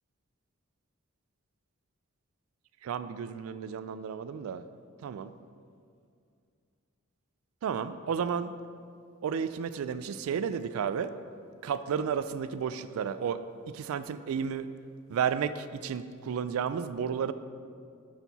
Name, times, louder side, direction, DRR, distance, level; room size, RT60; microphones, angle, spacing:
voice 1, 2.8-4.6 5.0-5.3 7.6-8.5 9.2-11.1 11.6-13.4 13.7-14.7 15.1-17.3, right 7 dB, 75° right, 13 dB, 0.3 m, -32 dB
9.3 x 4.5 x 4.1 m, 2.3 s
head